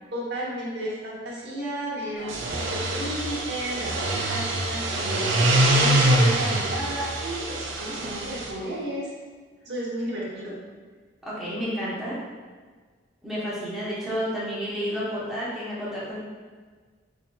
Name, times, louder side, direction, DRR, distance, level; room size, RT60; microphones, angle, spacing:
voice 1, 0.1-5.3 5.7-9.1 9.6-10.6, right 1 dB, 60° right, -6 dB, 1.0 m, -33 dB
sound 1, 2.2-8.5, right 1 dB, 75° right, 0.5 m, -24 dB
voice 2, 11.2-12.2 13.2-16.2, equal, ahead, -10 dB, 0.9 m, -31 dB
4.4 x 2.8 x 2.2 m, 1.5 s
head